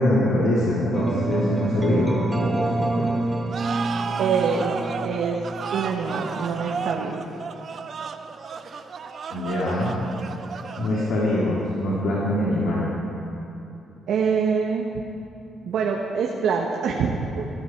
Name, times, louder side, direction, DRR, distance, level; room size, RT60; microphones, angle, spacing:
voice 1, 0.0-3.0 9.3-10.0 10.8-12.9, left 1 dB, 75° left, -7 dB, 3.2 m, -23 dB
sound 1, 0.9-6.8, right 2 dB, 15° right, 1.8 m, -28 dB
sound 2, 3.5-11.4, right 5 dB, 50° right, 0.8 m, -33 dB
voice 2, 4.2-5.4 5.7-7.2 14.1-14.9 15.6-17.5, right 6 dB, 75° right, 0 dB, 1.3 m, -25 dB
22.5 x 13.0 x 4.7 m, 2.8 s
cardioid pair, 90°, 0 cm